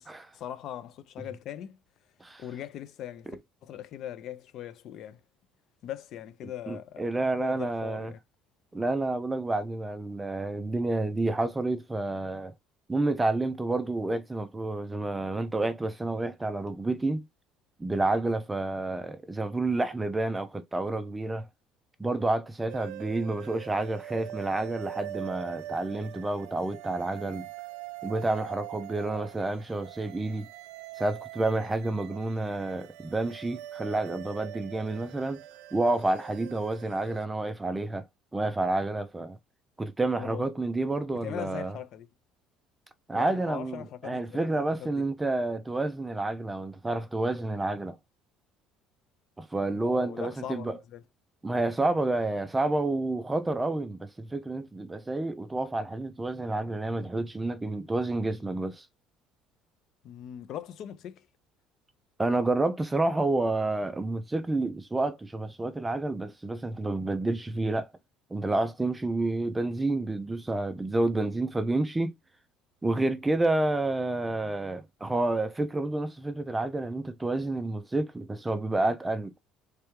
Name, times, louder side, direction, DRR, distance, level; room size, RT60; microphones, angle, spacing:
voice 1, 0.3-1.8 2.4-3.4 3.6-5.2 5.8-8.2 40.2-40.5 41.1-42.1 43.1-45.0 49.8-51.0 60.0-61.3, left 10 dB, 45° left, 0.5 m, -40 dB
voice 2, 6.7-8.1 8.7-12.5 12.9-17.3 17.8-21.5 22.0-27.5 28.0-30.5 31.0-35.4 35.7-38.1 38.3-39.4 39.8-41.8 43.1-48.0 49.4-50.7 51.4-58.9 62.2-67.9 68.3-72.1 72.8-79.3, right 2 dB, 10° right, 0.4 m, -29 dB
sound 1, 22.7-37.3, right 13 dB, 85° right, 0.5 m, -43 dB
3.4 x 3.3 x 3.0 m
cardioid pair, 170°, 0 cm